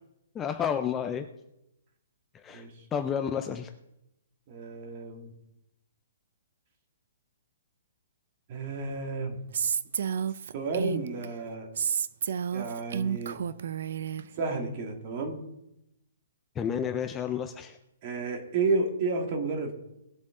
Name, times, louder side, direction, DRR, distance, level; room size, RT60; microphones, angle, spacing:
voice 1, 0.3-1.3 2.3-3.7 16.6-17.8, left 8 dB, 10° left, 7 dB, 0.4 m, -31 dB
voice 2, 2.5-2.8 4.5-5.3 8.5-9.4 10.5-11.7 12.5-13.4 14.4-15.4 18.0-19.7, right 3 dB, 30° right, 3 dB, 1.8 m, -31 dB
Female speech woman speaking, 9.5-11.3 11.8-14.2, right 8 dB, 55° right, 0.5 m, -30 dB
19.0 x 7.8 x 3.7 m, 0.87 s
hypercardioid pair, 175°, 0 cm